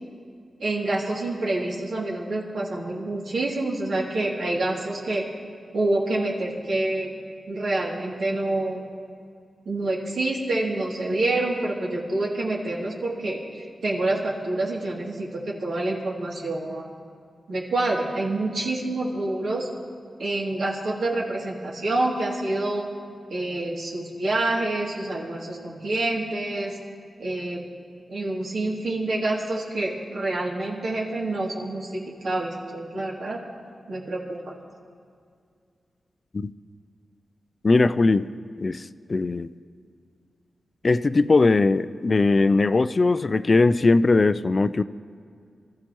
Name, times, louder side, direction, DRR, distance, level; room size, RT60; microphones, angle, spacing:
voice 1, 0.6-5.2 5.7-7.1 7.5-8.8 9.6-16.9 17.5-19.7 20.2-22.9 23.3-26.8 27.2-27.6 28.1-33.4 33.9-34.5, right 2 dB, 85° right, -4 dB, 2.7 m, -27 dB
voice 2, 37.6-38.3 38.6-39.5 40.8-44.8, left 3 dB, 40° left, 14 dB, 0.4 m, -20 dB
24.5 x 14.0 x 3.1 m, 2.2 s
wide cardioid pair, 90°, 0 cm